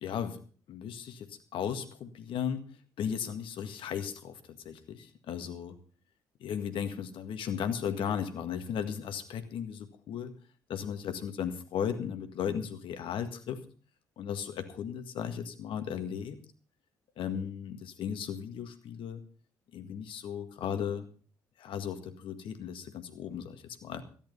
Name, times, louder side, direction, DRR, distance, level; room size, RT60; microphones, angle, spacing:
voice 1, 0.0-0.4 0.7-2.6 3.0-4.4 4.6-5.8 6.4-10.3 10.7-13.6 14.2-16.4 17.2-19.2 19.7-21.1 21.6-24.0, left 8 dB, 60° left, 9 dB, 1.8 m, -36 dB
14.0 x 11.0 x 5.4 m, 0.41 s
hypercardioid pair, 50°, 10 cm